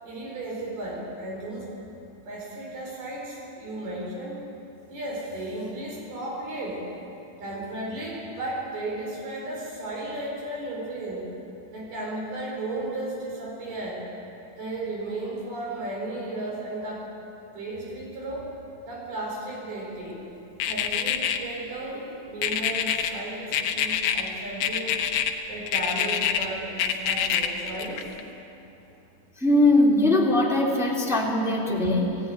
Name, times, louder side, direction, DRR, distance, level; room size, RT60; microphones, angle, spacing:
voice 1, 0.0-1.7 2.3-4.4 4.9-6.9 7.4-11.3 11.7-14.1 14.6-17.1 17.5-18.5 18.9-20.2 20.6-25.0 25.5-28.1, right 1 dB, 70° right, -3 dB, 6.8 m, -34 dB
sound 1, 20.6-21.4 22.4-23.1 23.5-24.3 24.6-25.3 25.7-26.5 26.8-28.2, left 9 dB, 80° left, 3.1 m, -25 dB
voice 2, 29.4-32.2, left 1 dB, ahead, -4 dB, 1.7 m, -21 dB
18.0 x 16.5 x 10.0 m, 2.8 s
omnidirectional pair, 4.7 m